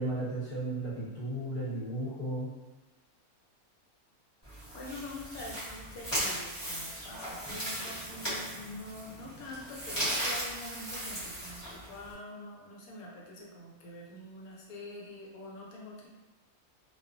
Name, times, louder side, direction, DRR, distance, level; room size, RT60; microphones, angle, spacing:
voice 1, 0.0-2.5, right 1 dB, 30° right, -13 dB, 0.6 m, -34 dB
sound 1, 4.4-12.1, right 1 dB, 20° left, 0.8 m, -37 dB
voice 2, 4.7-16.1, left 2 dB, 75° left, -3 dB, 1.0 m, -45 dB
2.3 x 2.3 x 2.4 m, 1.1 s
omnidirectional pair, 1.6 m